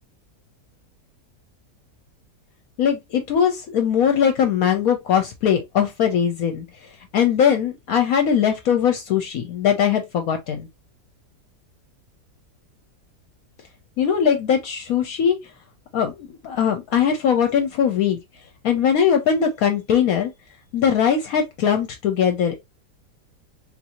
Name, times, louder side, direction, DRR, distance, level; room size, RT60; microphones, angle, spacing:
voice 1, 2.8-6.6 7.1-10.7 14.0-15.4 15.9-18.2 18.6-20.3 20.7-22.6, left 8 dB, 70° left, 0.9 m, -20 dB
3.6 x 2.6 x 2.8 m
omnidirectional pair, 1.8 m